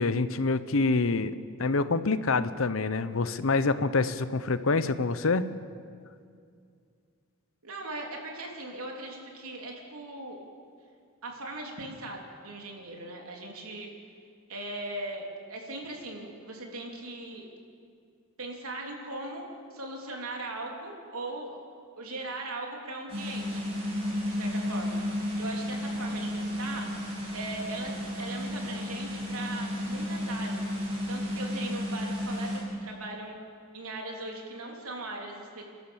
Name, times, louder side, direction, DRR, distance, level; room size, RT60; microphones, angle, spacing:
voice 1, 0.0-1.3 1.6-5.5, left 3 dB, 70° left, 13 dB, 0.8 m, -26 dB
voice 2, 7.6-10.4 11.2-13.9 14.5-17.4 18.4-21.6 22.0-23.7 24.3-25.0 25.4-26.9 27.3-30.6 31.1-33.4 33.7-35.6, right 2 dB, 85° right, 0 dB, 3.5 m, -39 dB
sound 1, 23.1-32.6, left 1 dB, 25° right, 6.7 m, -33 dB
30.0 x 12.0 x 7.3 m, 2.3 s
head